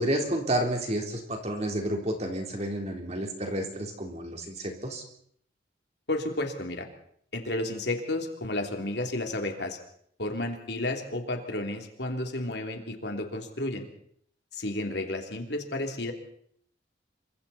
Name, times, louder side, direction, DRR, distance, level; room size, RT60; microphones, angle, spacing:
voice 1, 0.0-5.0, right 1 dB, 35° right, 2 dB, 3.7 m, -30 dB
voice 2, 6.1-6.9 7.3-9.8 10.2-13.9 14.5-16.1, left 1 dB, 60° left, 3 dB, 3.2 m, -32 dB
28.0 x 25.0 x 4.3 m, 0.65 s
head